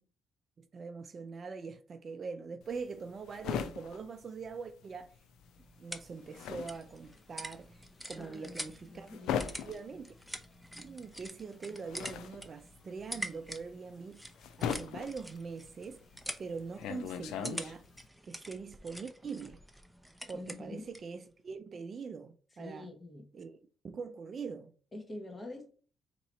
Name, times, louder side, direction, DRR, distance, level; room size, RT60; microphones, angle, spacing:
voice 1, 0.6-5.1 5.8-7.8 8.1-9.1 9.6-10.1 10.8-14.2 14.6-16.0 16.4-17.8 18.3-19.6 20.3-22.9 23.3-23.6 23.9-24.7, right 5 dB, 45° right, 0.5 m, -43 dB
sound 1, 2.6-5.2 5.4-18.1, left 8 dB, 90° left, 0.4 m, -40 dB
sound 2, 5.3-21.1, equal, ahead, 0.6 m, -47 dB
voice 2, 8.2-8.6 8.9-10.0 20.3-20.8 22.5-23.3 24.9-25.7, left 2 dB, 25° left, 1.4 m, -46 dB
3.8 x 2.9 x 4.4 m
cardioid pair, 90°, 0 cm